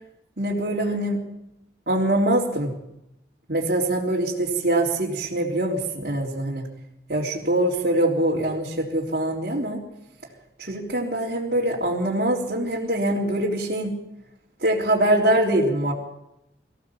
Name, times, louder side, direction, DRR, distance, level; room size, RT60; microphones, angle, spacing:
voice 1, 0.4-1.2 1.9-2.7 3.5-6.7 7.1-9.8 10.6-13.9 14.6-15.9, right 1 dB, 55° right, -6 dB, 3.4 m, -23 dB
24.5 x 15.5 x 7.1 m, 0.86 s
head